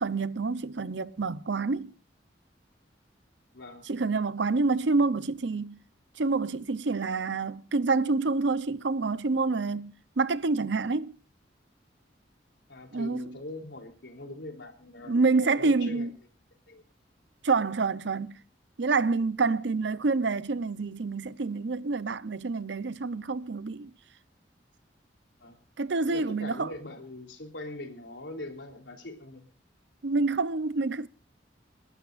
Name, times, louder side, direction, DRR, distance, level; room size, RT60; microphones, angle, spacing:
voice 1, 0.0-1.9 3.9-5.8 6.2-11.2 12.9-13.4 15.1-16.1 17.4-18.4 18.8-23.9 25.8-26.7 30.0-31.1, right 3 dB, 75° right, 0.7 m, -27 dB
voice 2, 3.5-3.9 12.7-16.1 16.7-16.8 19.4-19.6 25.4-25.6 26.1-29.4, left 2 dB, 85° left, 3.4 m, -42 dB
30.0 x 12.5 x 2.5 m
head